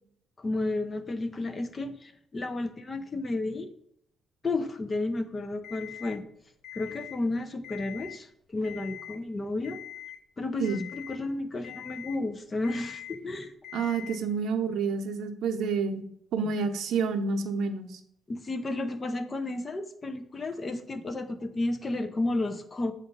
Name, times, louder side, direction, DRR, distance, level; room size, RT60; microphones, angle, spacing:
voice 1, 0.4-3.7 4.4-6.2 6.7-9.8 10.4-13.5 18.3-22.9, left 2 dB, 30° left, 9 dB, 0.7 m, -32 dB
Alarm, 5.6-6.2 6.6-7.2 7.6-8.2 8.6-9.2 9.6-10.2 10.6-11.2 11.6-12.2 12.6-13.2 13.6-14.2, left 12 dB, 75° left, 0.9 m, -43 dB
voice 2, 13.7-16.0 16.3-18.0, right 5 dB, 75° right, 7 dB, 0.6 m, -29 dB
7.7 x 2.6 x 5.5 m, 0.71 s
cardioid pair, 90°, 0 cm